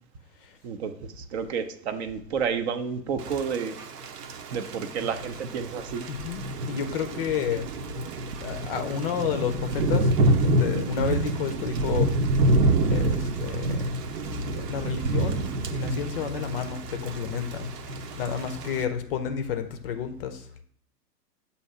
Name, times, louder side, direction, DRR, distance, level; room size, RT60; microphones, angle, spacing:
voice 1, 0.6-3.8 4.5-6.1, right 6 dB, 40° right, 9 dB, 0.6 m, -30 dB
Thunder / Rain, 3.2-18.8, right 2 dB, 70° right, 0.8 m, -27 dB
voice 2, 6.1-7.7 8.4-12.2 12.9-14.0 14.5-17.7 18.2-20.6, left 7 dB, 35° left, 8 dB, 0.5 m, -31 dB
6.9 x 2.8 x 5.5 m, 0.63 s
hypercardioid pair, 110°, 50 cm